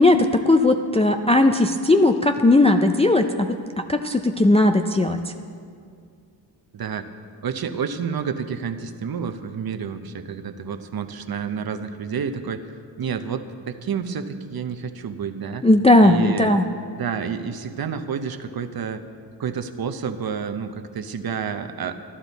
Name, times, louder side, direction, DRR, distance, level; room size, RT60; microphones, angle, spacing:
voice 1, 0.0-5.2 15.6-16.7, left 2 dB, 15° left, 5 dB, 0.3 m, -17 dB
voice 2, 6.7-7.1 7.4-12.7 13.0-15.7 16.0-16.7 17.0-19.0 19.4-22.0, right 6 dB, 55° right, 8 dB, 0.7 m, -29 dB
13.5 x 12.0 x 4.1 m, 2.2 s
wide cardioid pair, 130°, 45 cm